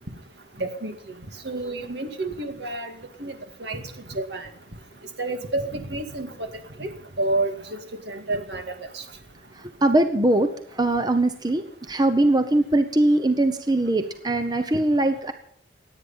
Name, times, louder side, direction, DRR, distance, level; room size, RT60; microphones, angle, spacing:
voice 1, 0.6-0.9 1.4-2.9 3.2-3.8 4.1-4.5 5.2-6.5 6.8-7.8 8.1-9.0, right 2 dB, 70° right, 6 dB, 2.2 m, -29 dB
voice 2, 9.6-15.3, right 1 dB, 20° right, 8 dB, 0.9 m, -21 dB
24.0 x 9.4 x 5.7 m, 0.65 s
head